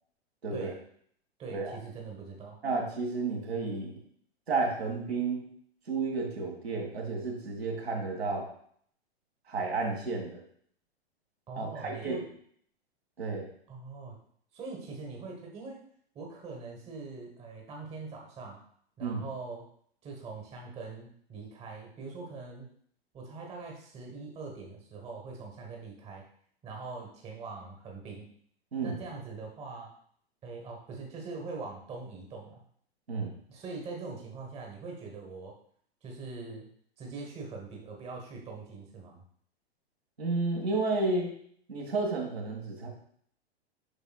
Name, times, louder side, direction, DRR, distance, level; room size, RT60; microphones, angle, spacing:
voice 1, 1.4-2.6 11.5-12.2 13.7-14.2 14.5-15.8 16.1-18.6 19.0-19.7 20.0-22.7 23.1-26.2 26.6-28.3 28.8-29.9 30.4-32.6 33.5-35.5 36.0-36.7 37.0-39.2, right 4 dB, 20° right, 0 dB, 1.3 m, -42 dB
voice 2, 2.6-4.0 4.5-5.4 5.9-8.5 9.5-10.4 11.6-12.2 13.2-13.5 19.0-19.2 28.7-29.0 33.1-33.3 40.2-41.3 41.7-42.9, right 3 dB, 75° right, -1 dB, 2.0 m, -31 dB
8.0 x 5.5 x 2.4 m, 0.62 s
figure-of-eight pair, 100°, 32 cm